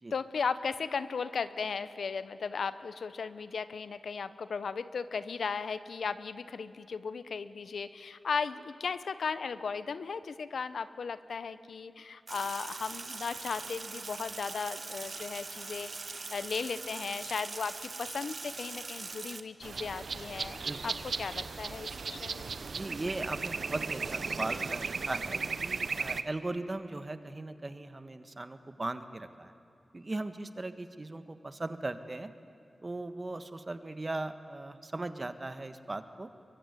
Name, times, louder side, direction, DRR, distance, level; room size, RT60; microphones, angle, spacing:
voice 1, 0.1-15.9 16.3-22.5, left 5 dB, 90° left, 14 dB, 0.9 m, -36 dB
Sink (filling or washing), 12.3-19.4, right 3 dB, 55° right, 1.4 m, -42 dB
sound 1, 19.6-26.2, right 5 dB, 75° right, 1.0 m, -36 dB
voice 2, 20.6-20.9 22.7-29.5 29.9-32.3 32.8-36.3, right 2 dB, 35° right, 10 dB, 1.5 m, -38 dB
23.5 x 23.0 x 9.7 m, 2.8 s
wide cardioid pair, 75°, 0 cm